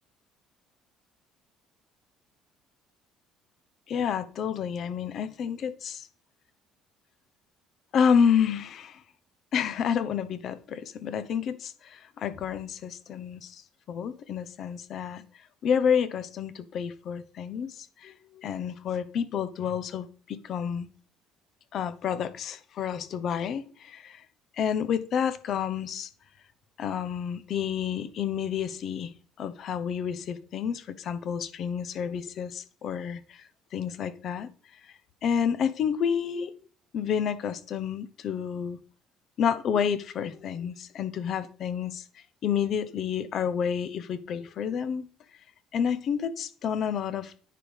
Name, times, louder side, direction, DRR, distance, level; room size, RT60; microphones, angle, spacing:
voice 1, 3.9-6.1 7.9-9.0 9.5-13.6 13.9-15.2 15.6-20.9 21.7-24.2 24.6-26.1 26.8-29.1 29.4-33.4 33.7-34.5 35.2-36.5 36.9-38.8 39.4-42.0 42.4-45.1 45.7-47.5, left 7 dB, 60° left, 13 dB, 1.0 m, -29 dB
9.7 x 4.9 x 5.3 m, 0.42 s
hypercardioid pair, 65°, 0 cm